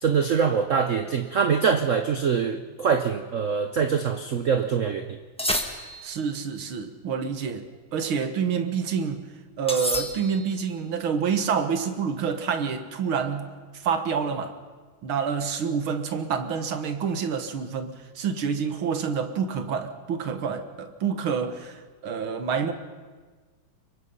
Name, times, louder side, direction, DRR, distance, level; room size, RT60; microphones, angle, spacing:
voice 1, 0.0-5.2, right 6 dB, 55° right, 7 dB, 0.9 m, -24 dB
sound 1, 5.4-6.3 9.7-10.6, left 1 dB, 5° left, 1.4 m, -30 dB
voice 2, 6.0-9.3 9.6-13.5 13.7-14.5 15.0-22.7, right 6 dB, 75° right, 8 dB, 2.3 m, -28 dB
25.5 x 23.0 x 5.6 m, 1.4 s
omnidirectional pair, 2.3 m